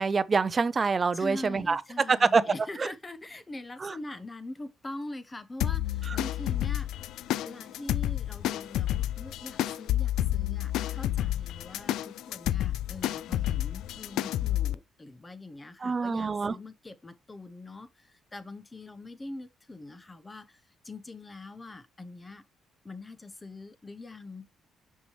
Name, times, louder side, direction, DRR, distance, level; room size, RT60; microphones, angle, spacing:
voice 1, 0.0-1.8 2.1-2.4 2.8-2.9 3.8-3.9 6.1-6.2 15.8-16.6, right 4 dB, 35° right, 0.6 m, -25 dB
voice 2, 1.1-6.9 7.2-22.4 22.8-24.5, left 2 dB, 20° left, 0.9 m, -43 dB
sound 1, 5.6-14.7, left 13 dB, 85° left, 0.3 m, -30 dB
6.0 x 5.6 x 3.1 m
cardioid pair, 90°, 0 cm